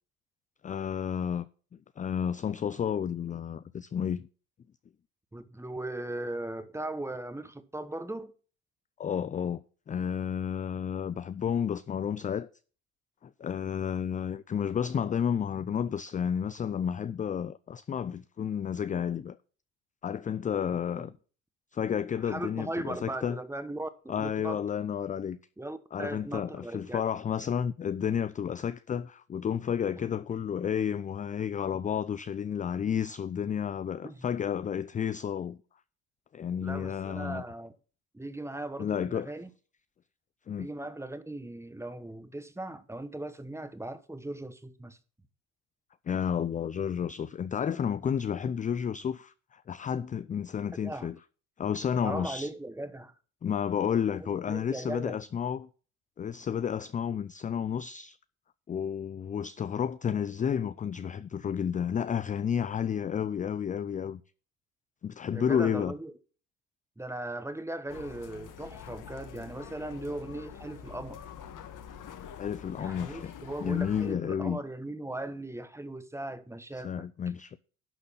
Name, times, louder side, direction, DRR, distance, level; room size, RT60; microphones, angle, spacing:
voice 1, 0.6-1.5 2.0-4.3 9.0-12.5 13.2-19.4 20.0-21.1 21.7-23.4 24.1-25.4 25.9-35.6 36.3-37.4 38.8-39.3 40.5-40.7 46.1-51.2 51.6-52.5 53.4-55.7 56.2-58.2 58.7-64.2 65.0-65.9 72.3-73.3 73.6-74.6 76.7-77.6, left 8 dB, 20° left, 0.4 m, -31 dB
voice 2, 5.3-8.3 20.7-21.1 22.2-24.6 25.6-27.0 34.0-34.3 36.6-37.8 38.1-39.5 40.6-45.0 50.8-51.1 52.0-53.1 54.2-55.2 65.3-66.1 67.0-71.2 72.8-77.1, right 1 dB, 5° right, 1.1 m, -38 dB
sound 1, 67.9-74.2, left 8 dB, 50° left, 1.4 m, -46 dB
11.5 x 4.0 x 6.9 m
supercardioid pair, 80°, 41 cm